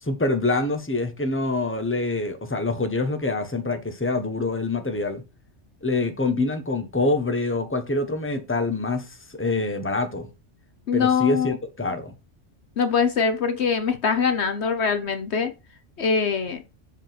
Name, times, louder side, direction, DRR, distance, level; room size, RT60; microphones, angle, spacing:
voice 1, 0.0-5.2 5.8-10.3 10.9-12.1, left 2 dB, 10° left, 1.3 m, -25 dB
voice 2, 10.9-11.6 12.8-15.5 16.0-16.6, left 6 dB, 65° left, 1.2 m, -23 dB
7.4 x 5.0 x 6.0 m
omnidirectional pair, 1.3 m